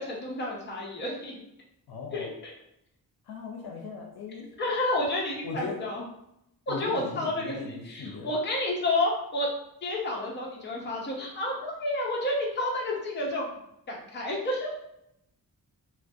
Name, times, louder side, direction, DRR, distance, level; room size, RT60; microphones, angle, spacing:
voice 1, 0.0-1.4 2.1-2.3 4.6-6.0 6.7-9.5 9.8-13.6 13.9-14.7, left 1 dB, 30° left, -2 dB, 0.5 m, -30 dB
voice 2, 1.9-2.3 3.3-4.5 5.4-5.8 6.7-8.3, left 4 dB, 85° left, 2 dB, 0.6 m, -38 dB
2.5 x 2.1 x 2.5 m, 0.79 s
wide cardioid pair, 165°, 37 cm